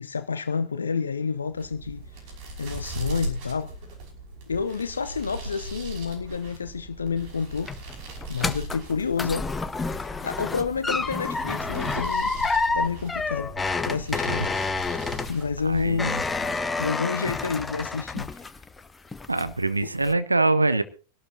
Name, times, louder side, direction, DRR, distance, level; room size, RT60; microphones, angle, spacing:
voice 1, 0.0-2.1 2.6-3.7 4.5-7.7 8.3-9.5 10.2-12.3 12.7-13.5 13.8-14.4 15.1-18.4 19.8-19.9, left 5 dB, 75° left, 0.7 m, -29 dB
sound 1, 1.4-16.9, right 1 dB, 45° right, 5.6 m, -39 dB
sound 2, 7.2-18.8 19.1-19.6 20.0-20.1, left 3 dB, 10° left, 0.8 m, -29 dB
voice 2, 14.1-14.5 15.6-16.2 19.3-20.8, right 2 dB, 80° right, 0.9 m, -24 dB
24.5 x 12.0 x 2.8 m
figure-of-eight pair, 90°, 0 cm